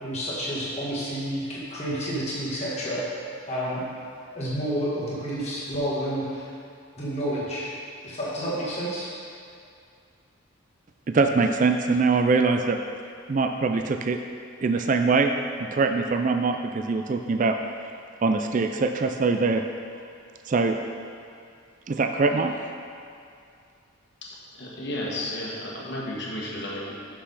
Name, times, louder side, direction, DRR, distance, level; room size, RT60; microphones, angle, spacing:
voice 1, 0.0-3.0 3.5-3.8 4.3-6.5 7.0-7.7 8.0-9.1, equal, 30° left, -8 dB, 1.6 m, -29 dB
voice 2, 11.1-12.8 13.3-14.2 14.6-15.3 15.6-17.9 18.2-19.6 20.5-20.8 21.9-22.8, right 4 dB, 35° right, 6 dB, 0.3 m, -23 dB
voice 3, 24.5-26.9, left 1 dB, 50° left, -4 dB, 1.4 m, -33 dB
6.2 x 5.9 x 5.6 m, 2.4 s
head